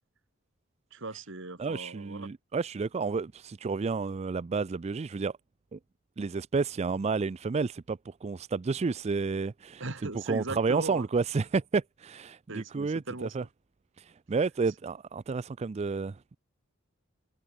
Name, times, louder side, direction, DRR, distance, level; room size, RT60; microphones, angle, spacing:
voice 1, 0.9-2.3 9.8-11.1 12.5-13.4, right 2 dB, 65° right, 2.3 m, -38 dB
voice 2, 1.6-5.3 5.7-5.8 6.2-9.8 10.3-13.4 14.0-16.4, right 4 dB, 30° right, 0.4 m, -31 dB
head